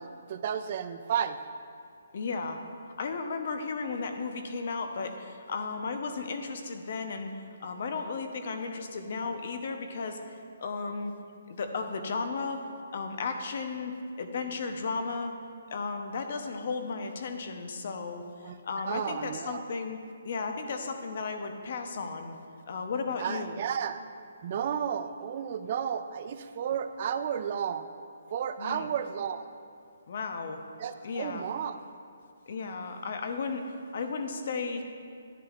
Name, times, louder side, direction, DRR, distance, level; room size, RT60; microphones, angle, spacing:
voice 1, 0.0-1.4 18.4-18.6 18.8-19.6 23.2-24.0 24.4-27.9 28.3-29.5 30.8-31.8, right 8 dB, 35° right, 10 dB, 0.4 m, -32 dB
voice 2, 2.1-2.6 3.0-7.3 7.6-10.2 10.6-11.1 11.5-12.6 12.9-15.4 15.7-20.0 20.2-22.4 22.7-23.6 28.6-28.9 30.1-30.6 31.0-31.4 32.5-35.1, left 4 dB, 45° left, 6 dB, 0.8 m, -34 dB
10.5 x 10.0 x 2.5 m, 2.3 s
hypercardioid pair, 170°, 0 cm